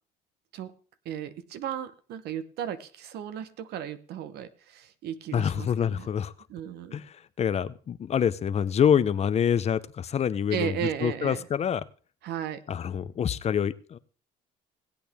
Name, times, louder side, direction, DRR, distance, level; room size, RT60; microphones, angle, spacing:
voice 1, 1.0-6.1 6.5-7.0 10.5-11.4 12.2-12.6, right 9 dB, 75° right, 1.0 m, -35 dB
voice 2, 5.3-6.3 6.9-11.8 12.7-14.0, left 8 dB, 40° left, 0.7 m, -26 dB
18.5 x 8.4 x 3.5 m
cardioid pair, 110°, 17 cm